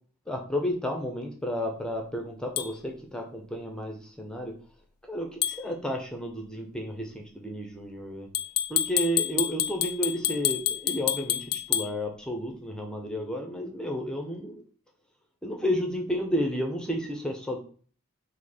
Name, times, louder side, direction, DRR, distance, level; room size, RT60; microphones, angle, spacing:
voice 1, 0.3-4.5 5.0-8.3 8.7-14.6 15.4-17.6, equal, 5° left, 2 dB, 0.5 m, -32 dB
sound 1, 2.6-2.7 5.4-5.6 8.3-11.9, left 12 dB, 85° left, 0.4 m, -28 dB
5.0 x 2.0 x 4.1 m, 0.43 s
head